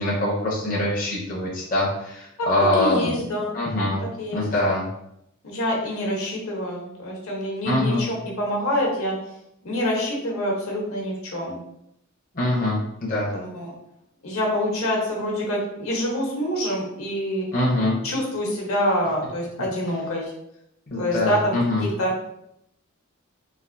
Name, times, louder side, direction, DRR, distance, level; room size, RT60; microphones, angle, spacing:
voice 1, 0.0-3.2 3.5-4.0 4.3-4.9 7.6-8.1 12.3-13.3 17.5-18.0 19.9-20.0 20.9-21.9, left 1 dB, 40° left, -5 dB, 0.6 m, -23 dB
voice 2, 2.8-3.5 4.2-4.4 5.4-9.2 9.6-11.6 13.3-13.7 14.2-17.5 18.0-20.3 21.0-22.1, equal, 70° left, -2 dB, 0.9 m, -26 dB
3.2 x 2.5 x 2.6 m, 0.79 s
head